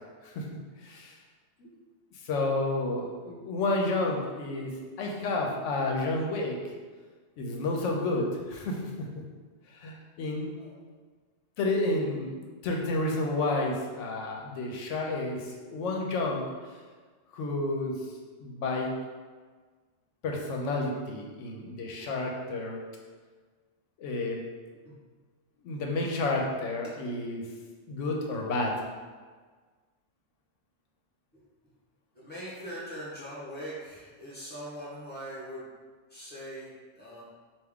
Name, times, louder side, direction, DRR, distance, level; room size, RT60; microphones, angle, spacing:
voice 1, 0.8-1.2 1.6-1.7 2.2-6.6 7.4-9.2 9.7-10.5 11.6-16.4 17.3-18.0 18.4-18.9 20.2-22.8 24.0-24.4 25.6-27.4 27.9-28.7, left 2 dB, 85° left, 0 dB, 1.0 m, -30 dB
voice 2, 32.1-35.6 36.1-37.2, equal, 10° left, -10 dB, 1.1 m, -41 dB
3.4 x 2.5 x 3.5 m, 1.5 s
omnidirectional pair, 1.2 m